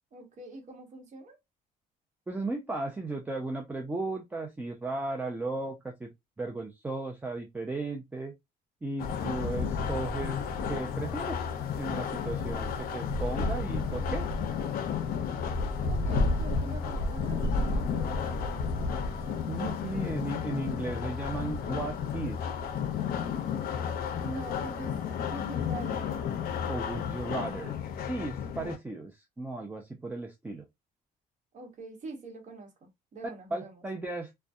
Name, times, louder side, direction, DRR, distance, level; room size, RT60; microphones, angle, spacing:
voice 1, 0.1-1.4 15.9-19.4 19.9-20.2 24.2-26.3 31.5-33.8, right 2 dB, 45° right, 1.0 m, -44 dB
voice 2, 2.3-6.1 6.4-8.3 8.8-11.4 11.8-14.3 19.5-22.4 26.7-27.8 28.0-30.7 33.5-34.3, right 2 dB, 10° right, 0.4 m, -35 dB
sound 1, 9.0-28.8, left 5 dB, 60° left, 0.5 m, -32 dB
2.5 x 2.2 x 2.3 m
cardioid pair, 110°, 17 cm